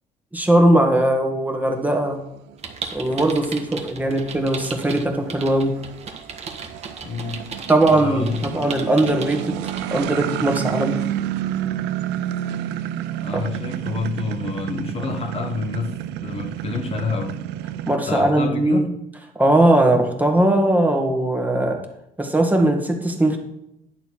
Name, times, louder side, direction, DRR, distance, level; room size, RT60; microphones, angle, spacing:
voice 1, 0.3-2.2 2.9-5.7 7.7-9.6 9.9-11.0 13.3-13.4 17.9-18.8 19.4-21.8 22.2-23.4, right 1 dB, 10° right, 1.7 m, -19 dB
sound 1, 1.9-18.0, right 12 dB, 85° right, 0.5 m, -30 dB
sound 2, 2.6-10.0, right 5 dB, 40° right, 1.5 m, -35 dB
voice 2, 7.0-7.6 7.9-8.5 13.1-17.4 18.1-19.0, left 4 dB, 35° left, 1.3 m, -28 dB
10.5 x 6.8 x 4.6 m
cardioid pair, 110°, 17 cm